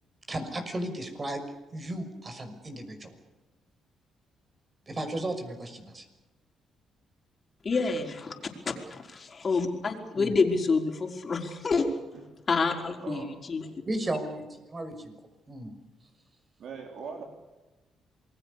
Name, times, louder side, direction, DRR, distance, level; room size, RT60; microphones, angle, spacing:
voice 1, 0.3-1.4 1.7-3.1 4.9-6.0 10.2-10.4 13.1-13.2 13.9-15.1 15.5-15.7, right 1 dB, 30° right, 8 dB, 6.1 m, -35 dB
voice 2, 7.6-11.9 12.5-13.7, left 4 dB, 40° left, 3 dB, 5.0 m, -28 dB
voice 3, 13.0-13.3 16.6-17.2, right 5 dB, 65° right, 3 dB, 4.4 m, -40 dB
28.0 x 21.5 x 6.8 m, 1.1 s
cardioid pair, 90°, 0 cm